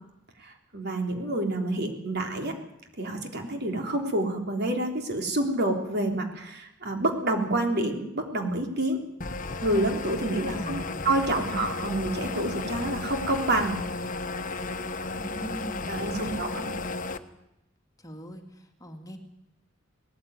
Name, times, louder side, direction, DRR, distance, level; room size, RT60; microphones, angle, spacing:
voice 1, 0.4-2.5 3.0-9.0 9.6-13.8 15.9-16.7, right 1 dB, 55° right, 3 dB, 3.5 m, -28 dB
sound 1, 9.2-17.2, left 3 dB, 40° left, 1.2 m, -34 dB
voice 2, 10.5-11.1 15.2-16.4 18.0-19.2, right 1 dB, 20° left, 4 dB, 2.2 m, -41 dB
19.0 x 14.5 x 9.5 m, 0.87 s
head